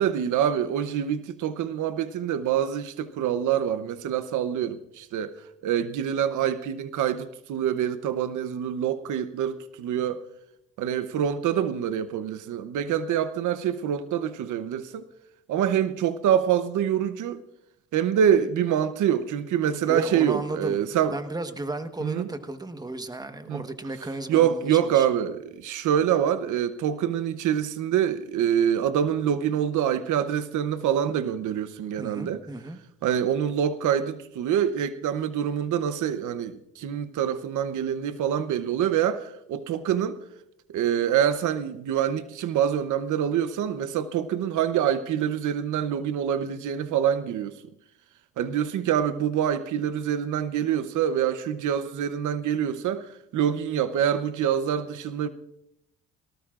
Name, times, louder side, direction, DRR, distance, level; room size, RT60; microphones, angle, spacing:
voice 1, 0.0-5.4 5.6-10.2 10.8-15.0 15.5-17.4 17.9-21.2 22.0-22.3 23.5-23.6 24.3-32.4 33.0-40.2 40.7-47.5 48.4-55.3, right 9 dB, 80° right, 0.9 m, -25 dB
voice 2, 19.8-25.1 32.0-32.8, right 2 dB, 15° right, 1.2 m, -34 dB
18.5 x 18.0 x 2.5 m
cardioid pair, 90°, 30 cm